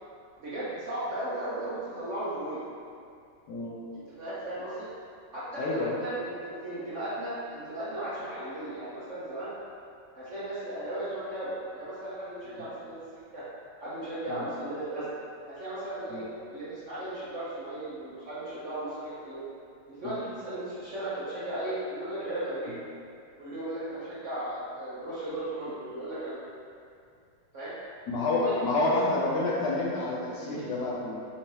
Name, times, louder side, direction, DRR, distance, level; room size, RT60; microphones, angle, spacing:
voice 1, 0.4-2.6 3.9-4.9 5.3-9.5 10.1-13.0 13.3-13.4 13.8-15.1 15.5-16.2 16.5-19.4 19.9-22.7 23.4-26.4 27.5-27.7 28.4-28.9 30.4-30.7, right 1 dB, 55° right, -11 dB, 0.8 m, -36 dB
voice 2, 5.6-6.0 14.3-14.4 16.1-16.2 20.0-20.1 22.7-22.8 28.1-31.2, left 2 dB, 70° left, -5 dB, 1.1 m, -29 dB
5.7 x 2.7 x 3.1 m, 2.4 s
omnidirectional pair, 2.1 m